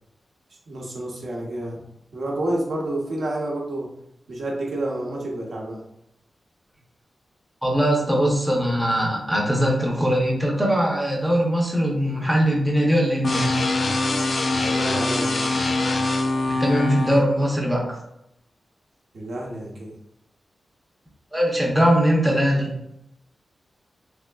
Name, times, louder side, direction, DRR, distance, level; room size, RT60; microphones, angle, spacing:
voice 1, 0.7-1.8 2.1-3.9 4.3-5.8 14.5-15.5 19.1-19.9, right 1 dB, 60° right, -2 dB, 0.8 m, -29 dB
voice 2, 7.6-13.6 16.6-18.0 21.3-22.7, equal, ahead, -3 dB, 0.6 m, -21 dB
sound 1, 13.2-17.2, left 2 dB, 40° left, 0.3 m, -23 dB
3.4 x 3.4 x 2.3 m, 0.81 s
wide cardioid pair, 170°, 0 cm